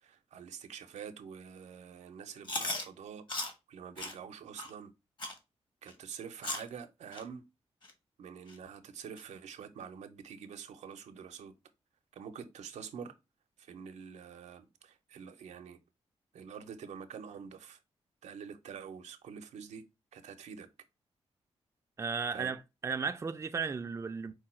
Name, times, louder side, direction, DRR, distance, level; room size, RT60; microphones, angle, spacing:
voice 1, 0.0-4.9 5.8-7.4 8.2-11.5 12.1-13.1 13.6-15.8 16.3-17.8 18.2-19.8 20.1-20.7 22.3-22.5, right 7 dB, 90° right, 0.6 m, -46 dB
Chewing mastication, 2.4-2.8 3.3-3.5 4.0-4.1 4.6-4.7 5.2-5.4 5.9-6.0 6.4-6.7 7.1-7.2 7.8-7.9 8.5-8.6 9.2-9.3, left 2 dB, 40° left, 1.2 m, -36 dB
voice 2, 22.0-24.3, right 5 dB, 25° right, 0.4 m, -35 dB
4.6 x 2.3 x 4.2 m
cardioid pair, 95°, 11 cm